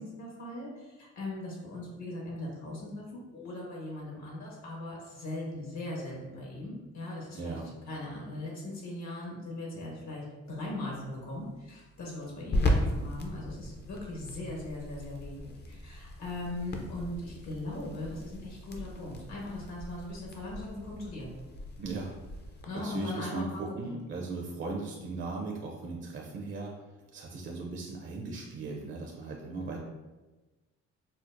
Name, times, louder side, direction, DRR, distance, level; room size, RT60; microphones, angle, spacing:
voice 1, 0.0-7.6 7.9-21.3 22.6-23.9 29.5-29.8, left 2 dB, 65° left, -3 dB, 1.2 m, -39 dB
voice 2, 7.3-7.6 21.8-22.1 22.7-26.7 27.1-29.8, right 3 dB, 40° right, -1 dB, 0.5 m, -37 dB
sound 1, 10.5-22.6, left 1 dB, 35° left, 0.5 m, -37 dB
4.4 x 2.0 x 2.5 m, 1.2 s
cardioid pair, 90°, 30 cm